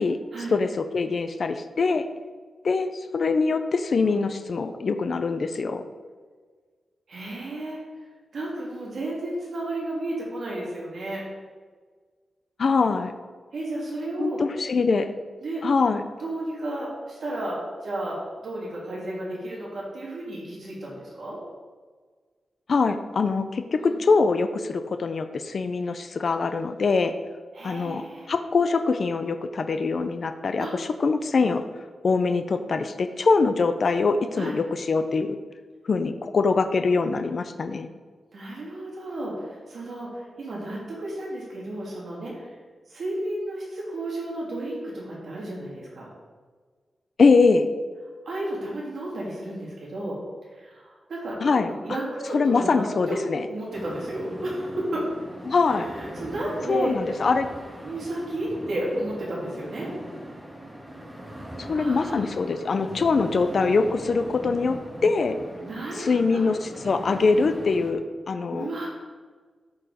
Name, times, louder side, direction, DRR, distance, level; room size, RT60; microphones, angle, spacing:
voice 1, 0.5-2.1 2.6-5.8 12.6-13.1 14.2-15.1 15.6-16.0 22.7-27.1 27.6-31.7 32.0-35.4 35.8-37.9 47.2-47.7 51.4-51.7 52.3-53.5 55.5-55.9 56.7-57.5 61.6-65.4 65.9-68.7, left 4 dB, 45° left, 8 dB, 0.5 m, -23 dB
voice 2, 7.1-7.8 8.3-11.2 13.5-14.4 15.4-15.6 16.2-21.4 23.8-24.0 27.5-28.3 30.6-30.7 34.4-34.6 38.3-42.5 42.9-46.1 48.2-50.2 50.5-52.8 53.1-53.2 53.5-55.1 55.7-56.9 57.8-59.9 61.7-62.2 65.6-66.5 68.5-68.9, right 1 dB, 60° right, -5 dB, 2.7 m, -33 dB
sound 1, 53.7-67.9, right 1 dB, 10° right, 1.4 m, -40 dB
13.0 x 4.8 x 5.0 m, 1.5 s
wide cardioid pair, 175°, 0 cm